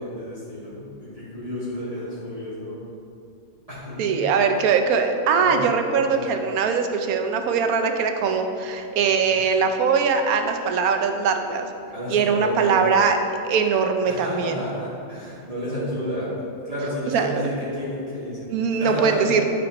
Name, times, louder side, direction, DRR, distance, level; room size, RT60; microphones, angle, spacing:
voice 1, 0.0-2.8 3.7-4.2 5.4-5.6 6.1-6.2 11.9-12.9 14.1-16.3 16.6-18.5 18.8-19.2, equal, 25° right, -11 dB, 2.0 m, -31 dB
voice 2, 4.0-11.7 12.1-13.2 13.4-14.6 17.1-17.5 18.5-19.4, right 5 dB, 80° right, 5 dB, 1.1 m, -21 dB
12.0 x 5.0 x 3.0 m, 2.6 s
omnidirectional pair, 1.5 m